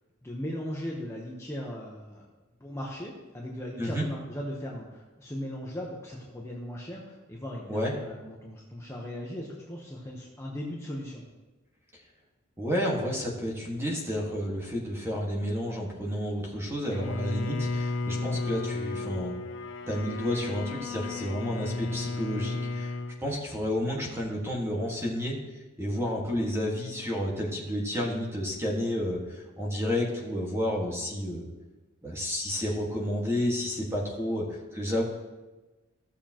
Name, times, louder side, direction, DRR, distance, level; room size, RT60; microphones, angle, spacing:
voice 1, 0.2-2.2 2.6-11.2 26.5-26.6, equal, 15° left, -3 dB, 1.0 m, -38 dB
voice 2, 12.6-19.3 19.9-22.9 23.2-25.4 25.8-31.5 32.0-35.0, equal, 15° right, -2 dB, 1.7 m, -31 dB
Bowed string instrument, 16.9-23.2, left 3 dB, 60° left, 0.9 m, -33 dB
15.5 x 6.8 x 3.0 m, 1.2 s
head